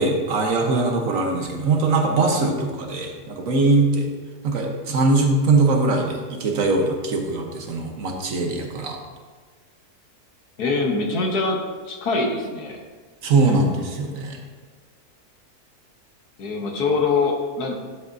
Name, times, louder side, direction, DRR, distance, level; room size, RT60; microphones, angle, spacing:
voice 1, 0.0-4.1 4.4-9.0 13.2-14.4, right 3 dB, 60° right, 2 dB, 1.3 m, -21 dB
voice 2, 10.6-11.6 11.9-12.8 16.4-17.7, left 3 dB, 75° left, 1 dB, 1.7 m, -23 dB
11.0 x 7.6 x 2.6 m, 1.4 s
omnidirectional pair, 1.7 m